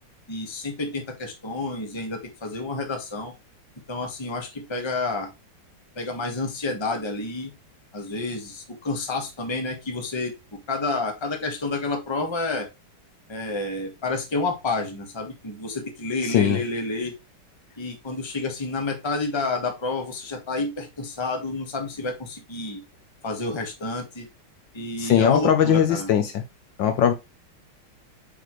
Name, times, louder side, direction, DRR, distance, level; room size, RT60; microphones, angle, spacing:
voice 1, 0.3-3.3 3.9-5.3 5.9-7.5 7.9-12.7 13.3-17.1 17.8-22.8 23.2-24.3 24.7-26.1, left 3 dB, 15° left, 3 dB, 1.1 m, -29 dB
voice 2, 16.3-16.6 25.0-26.4 26.8-27.1, left 9 dB, 70° left, 7 dB, 1.4 m, -20 dB
8.1 x 4.1 x 3.1 m, 0.24 s
omnidirectional pair, 2.3 m